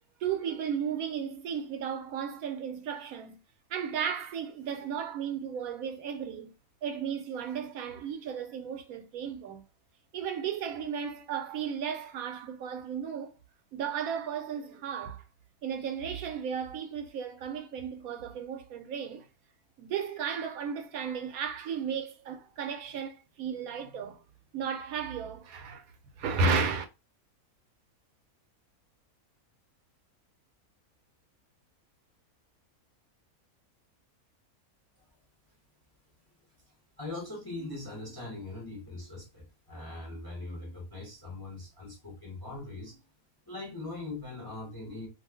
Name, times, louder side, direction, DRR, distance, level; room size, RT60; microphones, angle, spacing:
voice 1, 0.2-3.4 3.7-6.5 6.8-9.6 10.1-13.3 13.7-15.2 15.6-19.2 19.8-24.2 24.5-25.8 26.2-26.8, right 6 dB, 75° right, 1.0 m, -34 dB
voice 2, 37.0-43.0 43.5-45.1, left 2 dB, 20° left, 0.6 m, -41 dB
2.4 x 2.4 x 3.3 m
omnidirectional pair, 1.5 m